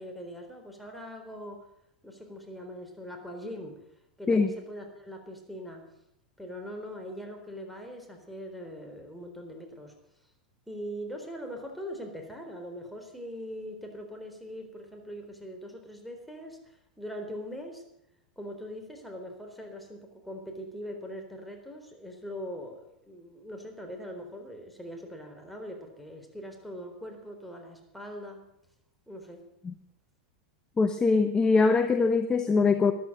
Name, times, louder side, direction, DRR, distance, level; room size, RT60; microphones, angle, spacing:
voice 1, 0.0-1.7 2.0-3.8 4.2-5.9 6.4-9.9 10.7-17.8 18.4-28.4 29.1-29.4, equal, ahead, 2 dB, 3.9 m, -41 dB
voice 2, 30.8-32.9, left 4 dB, 15° left, 8 dB, 1.0 m, -22 dB
14.0 x 11.0 x 8.0 m, 0.79 s
hypercardioid pair, 95°, 4 cm